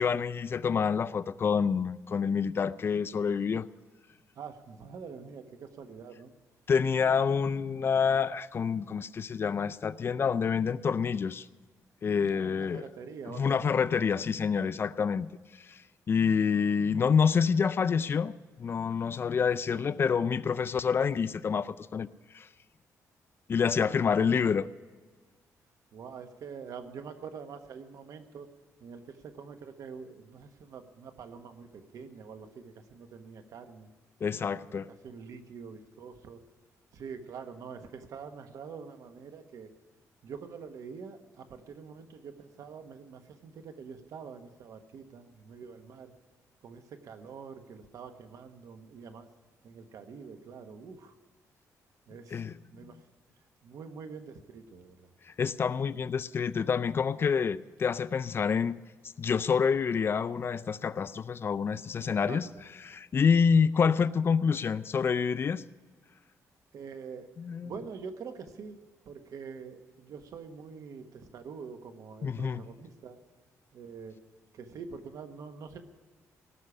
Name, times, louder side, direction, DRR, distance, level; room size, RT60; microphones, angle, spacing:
voice 1, 0.0-3.7 6.7-11.5 12.0-12.8 13.4-15.3 15.6-15.8 16.1-22.1 22.3-22.5 23.5-24.7 34.2-34.9 52.3-52.5 55.4-58.8 59.2-62.5 62.9-65.6 67.4-67.7 72.2-72.6, left 6 dB, 40° left, 14 dB, 0.4 m, -27 dB
voice 2, 4.3-6.3 7.1-7.2 12.3-13.7 23.8-24.2 25.9-28.5 28.8-33.9 34.6-36.4 36.9-39.7 40.2-46.1 46.6-49.3 49.6-51.1 52.1-52.4 52.7-53.0 53.6-55.1 55.8-55.9 62.0-62.6 66.7-67.3 67.6-68.8 69.0-73.2 73.7-74.2 74.5-75.8, right 6 dB, 70° right, 8 dB, 1.3 m, -45 dB
18.0 x 6.5 x 9.8 m, 1.4 s
cardioid pair, 115°, 6 cm